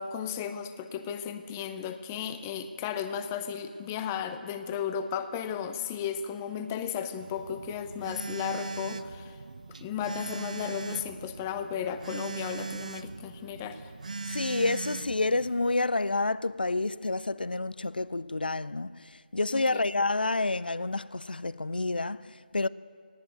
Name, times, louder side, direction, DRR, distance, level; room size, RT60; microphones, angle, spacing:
voice 1, 0.0-9.4 9.8-13.8 19.5-19.8, left 8 dB, 15° left, 0.8 m, -34 dB
Telephone, 7.2-15.7, right 4 dB, 50° right, 0.8 m, -40 dB
voice 2, 14.3-22.7, left 2 dB, 65° left, 0.5 m, -29 dB
18.5 x 18.0 x 9.0 m
figure-of-eight pair, 155°, 5 cm